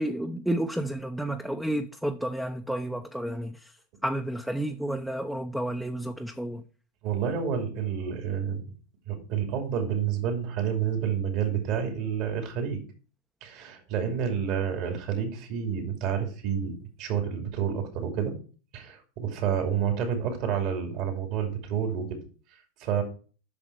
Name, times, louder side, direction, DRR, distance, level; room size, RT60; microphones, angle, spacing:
voice 1, 0.0-3.7 4.0-6.6, right 1 dB, 5° right, 0.7 m, -31 dB
voice 2, 7.0-8.6 9.1-12.8 13.4-18.4 18.7-22.2 22.8-23.0, right 8 dB, 55° right, 2.6 m, -29 dB
8.5 x 6.0 x 4.6 m
hypercardioid pair, 100°, 0 cm